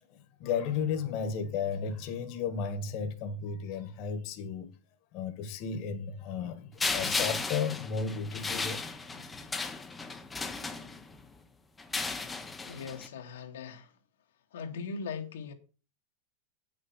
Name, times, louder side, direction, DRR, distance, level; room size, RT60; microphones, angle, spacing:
voice 1, 0.4-4.7 5.1-8.8 9.1-9.2, left 6 dB, 35° left, 1.4 m, -34 dB
sound 1, 6.8-11.3 11.8-13.1, left 3 dB, 10° left, 0.8 m, -35 dB
voice 2, 12.6-14.0 14.5-15.5, left 5 dB, 90° left, 2.0 m, -40 dB
9.2 x 6.4 x 5.9 m
supercardioid pair, 165°, 0 cm